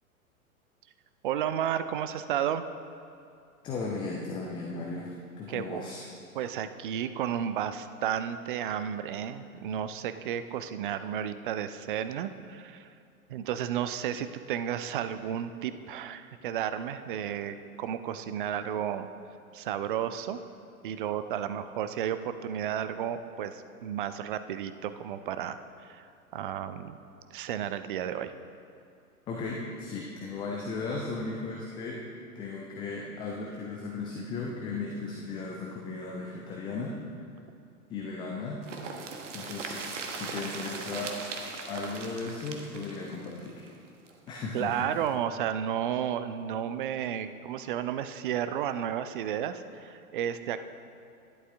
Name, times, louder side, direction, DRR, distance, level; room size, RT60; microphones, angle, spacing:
voice 1, 1.2-2.6 5.5-5.8 6.3-12.9 13.3-19.1 19.5-20.4 20.8-27.0 27.3-28.3 44.5-50.6, right 9 dB, 35° right, 11 dB, 0.5 m, -32 dB
voice 2, 3.6-6.0 29.3-32.0 32.3-37.0 37.9-38.6 39.3-41.2 41.7-43.7 44.3-44.9, left 3 dB, 10° left, -1 dB, 0.5 m, -36 dB
sound 1, 38.6-44.4 44.7-44.8 45.0-45.1, right 4 dB, 55° right, 1.4 m, -39 dB
11.5 x 10.5 x 3.5 m, 2.5 s
figure-of-eight pair, 105°, 44 cm